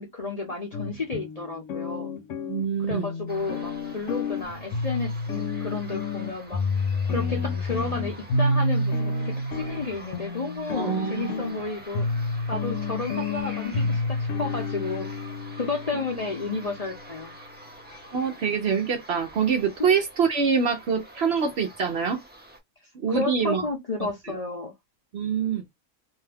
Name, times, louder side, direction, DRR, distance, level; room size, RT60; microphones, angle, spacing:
voice 1, 0.0-2.1 2.8-6.6 7.1-12.1 12.5-15.1 15.6-17.3 19.8-19.9 23.1-24.7, left 3 dB, 35° left, 0.7 m, -32 dB
sound 1, 0.7-17.0, left 2 dB, 70° left, 1.0 m, -29 dB
voice 2, 2.5-3.0 10.7-11.3 15.9-16.0 18.1-22.2 23.0-23.6 24.2-24.3 25.1-25.6, right 6 dB, 60° right, 0.8 m, -25 dB
sound 2, 3.3-22.6, right 1 dB, 10° right, 0.5 m, -46 dB
2.7 x 2.2 x 3.3 m
omnidirectional pair, 1.4 m